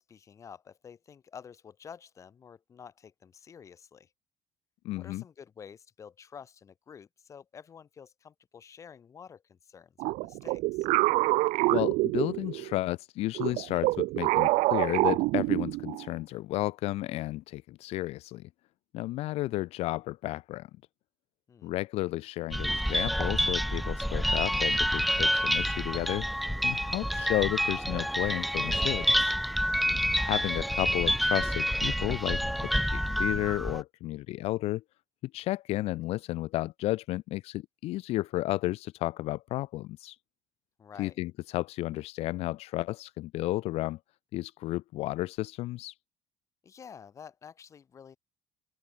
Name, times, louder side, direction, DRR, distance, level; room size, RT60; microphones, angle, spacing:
voice 1, 0.0-4.1 4.9-10.9 21.5-21.7 30.1-30.5 40.8-41.2 46.6-48.2, left 7 dB, 25° left, 2.2 m, -50 dB
voice 2, 4.8-5.2 11.7-18.5 18.9-20.7 21.6-26.3 26.6-29.4 30.2-32.4 32.9-34.8 35.2-40.2 41.0-44.0 44.3-45.9, left 17 dB, 60° left, 0.9 m, -32 dB
sound 1, 10.0-12.8 13.3-16.1, right 21 dB, 70° right, 0.6 m, -26 dB
sound 2, 22.5-33.8, equal, ahead, 0.4 m, -28 dB
open air
cardioid pair, 175°, 12 cm